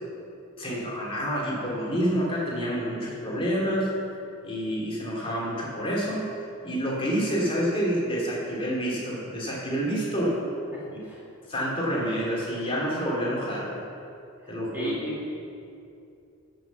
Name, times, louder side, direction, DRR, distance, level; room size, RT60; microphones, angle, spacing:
voice 1, 0.6-3.9 4.4-6.3 6.6-10.4 11.5-13.8 14.5-14.9, equal, 25° left, -4 dB, 2.6 m, -28 dB
voice 2, 10.7-11.2 14.4-15.3, left 1 dB, 10° right, -7 dB, 2.1 m, -36 dB
14.0 x 6.1 x 7.1 m, 2.6 s
head